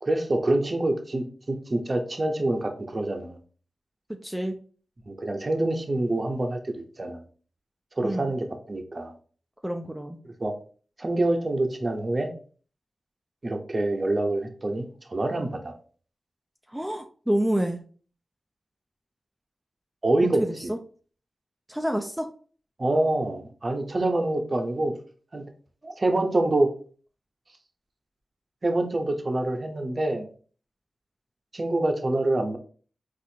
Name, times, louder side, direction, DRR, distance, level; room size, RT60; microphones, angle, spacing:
voice 1, 0.0-3.4 5.1-7.2 8.0-9.1 10.2-10.6 11.0-12.3 13.4-15.7 20.0-20.7 22.8-24.9 25.3-25.5 25.8-26.7 28.6-30.3 31.5-32.6, right 2 dB, 45° right, 4 dB, 0.7 m, -26 dB
voice 2, 4.2-4.6 8.0-8.3 9.6-10.2 16.7-17.8 20.4-20.8 21.7-22.3, right 1 dB, 5° right, 4 dB, 0.4 m, -28 dB
4.2 x 2.5 x 2.7 m, 0.42 s
cardioid pair, 50°, 0 cm